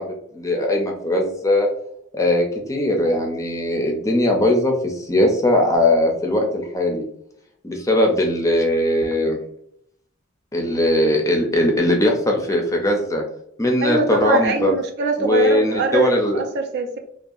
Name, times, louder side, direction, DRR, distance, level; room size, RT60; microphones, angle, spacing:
voice 1, 0.0-1.7 2.1-7.0 7.6-9.4 10.5-13.2 13.6-14.7 15.2-16.4, left 1 dB, 15° left, 1 dB, 0.4 m, -20 dB
voice 2, 13.8-17.0, right 3 dB, 55° right, 4 dB, 0.4 m, -23 dB
2.7 x 2.3 x 2.4 m, 0.71 s
head